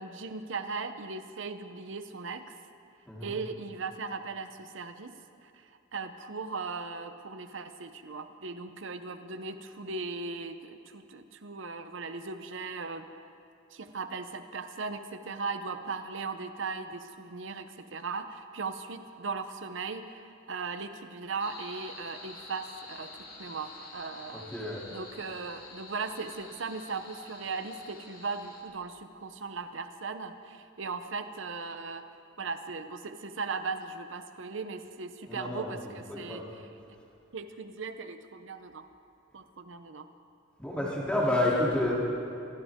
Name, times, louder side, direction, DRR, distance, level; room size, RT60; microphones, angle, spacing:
voice 1, 0.0-2.6 3.2-5.1 5.4-13.1 13.7-23.1 23.4-24.4 24.9-32.0 32.4-36.4 36.9-37.0 37.3-38.9 39.3-40.1, right 4 dB, 65° right, 9 dB, 0.8 m, -38 dB
voice 2, 3.1-3.4 24.3-24.8 35.3-36.5 40.6-41.9, left 1 dB, 5° left, -6 dB, 3.1 m, -30 dB
sound 1, 21.4-28.6, left 3 dB, 50° left, 2.7 m, -48 dB
23.5 x 16.0 x 3.7 m, 2.6 s
head